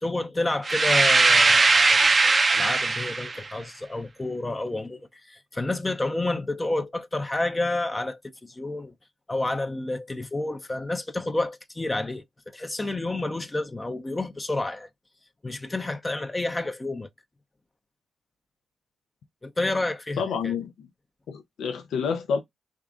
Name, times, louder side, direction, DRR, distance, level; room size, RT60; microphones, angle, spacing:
voice 1, 0.0-8.9 9.3-14.9 15.4-17.1 19.4-20.5, left 2 dB, 25° left, 0.5 m, -30 dB
sound 1, 0.6-3.4, right 3 dB, 40° right, 0.5 m, -19 dB
voice 2, 20.2-20.9 21.3-22.4, left 6 dB, 80° left, 0.5 m, -28 dB
3.5 x 2.5 x 3.5 m
cardioid pair, 60°, 0 cm